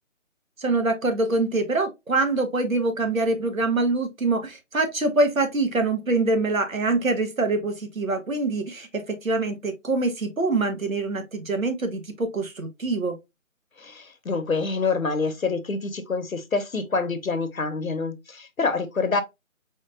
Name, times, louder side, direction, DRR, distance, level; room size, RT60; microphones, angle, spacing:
voice 1, 0.6-13.2, right 2 dB, 75° right, 1.2 m, -24 dB
voice 2, 13.8-19.2, left 4 dB, 80° left, 0.8 m, -26 dB
4.2 x 2.9 x 2.4 m
figure-of-eight pair, 155°, 41 cm